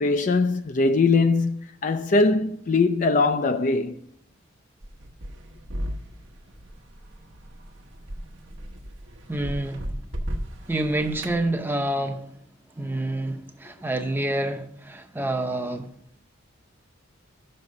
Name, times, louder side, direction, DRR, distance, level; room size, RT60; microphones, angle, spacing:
voice 1, 0.0-4.0, left 3 dB, 40° left, 0.4 m, -21 dB
sound 1, 4.8-11.4, equal, 70° right, 1.0 m, -36 dB
voice 2, 9.3-9.9 10.7-12.3 12.8-15.9, right 1 dB, 10° right, 0.7 m, -27 dB
6.7 x 5.9 x 6.5 m
head